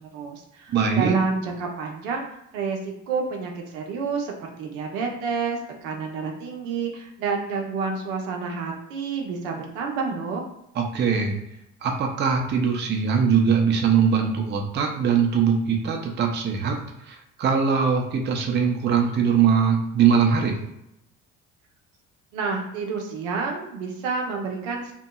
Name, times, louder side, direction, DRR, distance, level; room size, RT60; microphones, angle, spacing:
voice 1, 0.0-2.2 2.5-10.4 22.3-24.9, right 5 dB, 65° right, 1 dB, 0.7 m, -29 dB
voice 2, 0.7-1.2 10.8-11.4 11.8-16.8 17.1-20.6, right 6 dB, 25° right, 2 dB, 0.5 m, -21 dB
2.8 x 2.7 x 2.2 m, 0.82 s
figure-of-eight pair, 55°, 40 cm